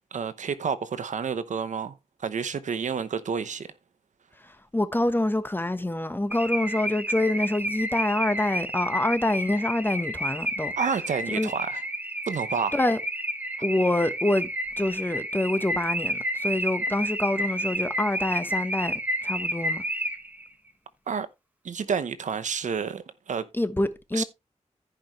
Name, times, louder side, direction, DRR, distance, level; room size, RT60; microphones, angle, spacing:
voice 1, 0.1-3.7 10.8-11.8 12.3-12.8 21.1-21.3 21.6-23.5 24.1-24.2, right 6 dB, 85° right, 0.9 m, -29 dB
voice 2, 4.7-10.7 11.3-11.5 12.7-13.0 13.6-14.5 14.8-19.8 23.5-24.2, left 1 dB, 15° left, 1.2 m, -26 dB
Car / Alarm, 6.3-20.5, equal, 15° right, 1.2 m, -31 dB
15.0 x 5.1 x 3.1 m
wide cardioid pair, 70°, 12 cm